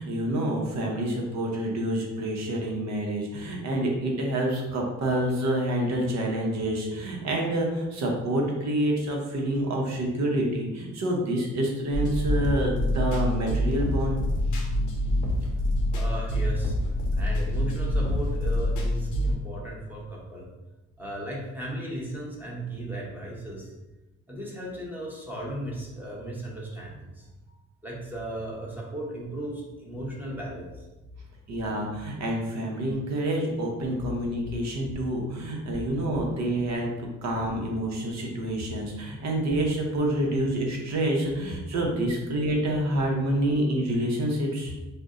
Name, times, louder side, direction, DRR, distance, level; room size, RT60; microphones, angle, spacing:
voice 1, 0.0-14.2 31.5-44.7, right 1 dB, 65° right, 0 dB, 0.8 m, -27 dB
sound 1, 11.9-19.3, left 1 dB, 80° left, 0.7 m, -26 dB
voice 2, 15.9-16.8 17.1-20.4 21.0-23.7 24.3-27.6 27.8-30.9 35.9-36.0, right 1 dB, 5° right, -4 dB, 0.8 m, -36 dB
2.5 x 2.1 x 3.6 m, 1.1 s
cardioid pair, 90°, 30 cm